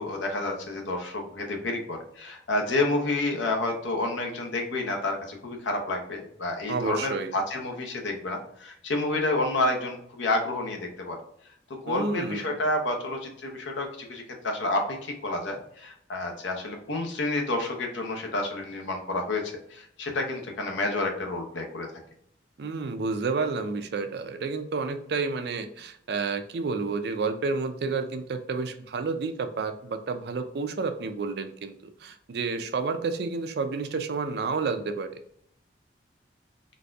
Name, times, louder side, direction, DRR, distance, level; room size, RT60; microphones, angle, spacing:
voice 1, 0.0-11.2 11.7-21.9, left 2 dB, 85° left, 2 dB, 0.8 m, -29 dB
voice 2, 6.7-7.3 11.9-12.5 22.6-31.7 32.0-35.1, right 4 dB, 60° right, 8 dB, 0.4 m, -30 dB
4.0 x 2.6 x 2.3 m, 0.69 s
head